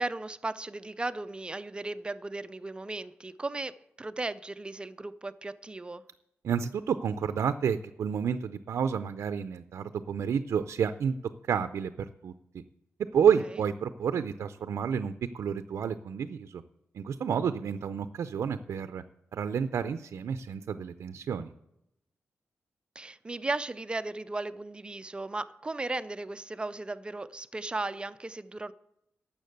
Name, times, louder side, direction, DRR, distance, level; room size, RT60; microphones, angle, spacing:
voice 1, 0.0-6.0 23.0-28.7, right 2 dB, 20° right, 0.5 m, -36 dB
voice 2, 6.4-11.1 11.5-11.9 12.2-12.3 13.1-16.6 16.9-19.0 19.3-21.5, right 7 dB, 80° right, 0.5 m, -30 dB
12.0 x 7.3 x 7.9 m
wide cardioid pair, 110°, 5 cm